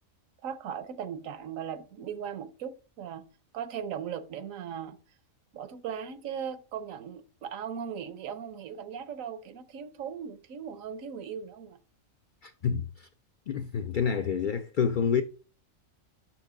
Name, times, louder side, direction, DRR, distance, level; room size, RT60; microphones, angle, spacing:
voice 1, 0.4-3.3 3.5-5.0 5.5-11.8, right 8 dB, 80° right, 1.1 m, -38 dB
voice 2, 12.4-13.1 13.5-15.2, left 7 dB, 80° left, 0.4 m, -28 dB
7.2 x 5.8 x 3.8 m
omnidirectional pair, 1.4 m